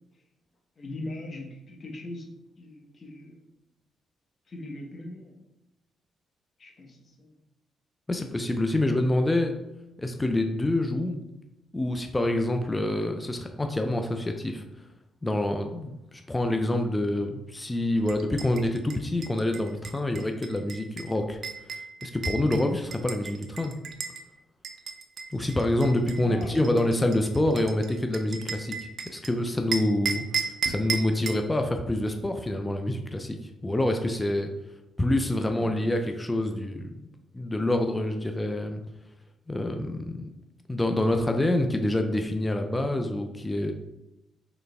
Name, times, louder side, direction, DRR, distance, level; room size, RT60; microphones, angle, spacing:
voice 1, 0.8-2.2 2.6-3.5 4.5-5.4 6.6-7.3 22.6-22.8 26.2-26.7 42.7-42.9, left 1 dB, 40° left, 2 dB, 0.9 m, -40 dB
voice 2, 8.1-9.6 10.0-11.2 11.7-14.6 15.2-21.4 22.0-22.7 23.0-23.7 25.3-28.8 29.1-30.2 30.6-34.5 35.0-36.9 37.3-38.8 39.5-40.3 40.7-43.7, left 1 dB, 15° left, 5 dB, 0.4 m, -26 dB
sound 1, 18.1-24.2 24.6-29.3 29.7-31.5, right 5 dB, 55° right, 0.4 m, -35 dB
4.0 x 3.2 x 3.4 m, 0.93 s
cardioid pair, 90°, 0 cm